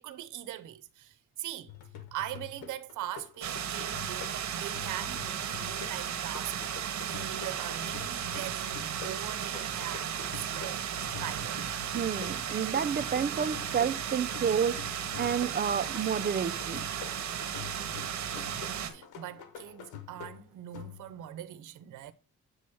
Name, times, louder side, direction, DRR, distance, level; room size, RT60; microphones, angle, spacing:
voice 1, 0.0-1.7 2.1-6.5 7.0-10.8 11.2-11.7 18.5-22.1, right 12 dB, 85° right, 0.8 m, -41 dB
sound 1, 1.7-21.3, left 8 dB, 90° left, 1.2 m, -47 dB
sound 2, 3.4-18.9, right 9 dB, 65° right, 1.2 m, -35 dB
voice 2, 11.9-16.9, right 7 dB, 35° right, 0.6 m, -30 dB
8.0 x 3.1 x 6.3 m
cardioid pair, 90°, 30 cm